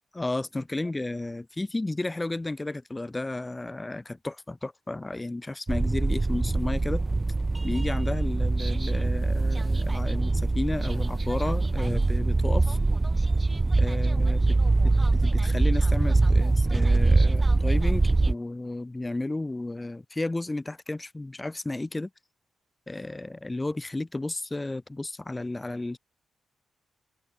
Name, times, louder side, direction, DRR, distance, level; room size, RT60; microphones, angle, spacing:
voice 1, 0.1-7.0 7.6-12.8 13.8-14.6 14.8-22.1 22.9-26.0, left 2 dB, 20° left, 0.8 m, -33 dB
sound 1, 5.7-18.3, right 3 dB, 25° right, 0.4 m, -23 dB
open air
cardioid pair, 85°, 0 cm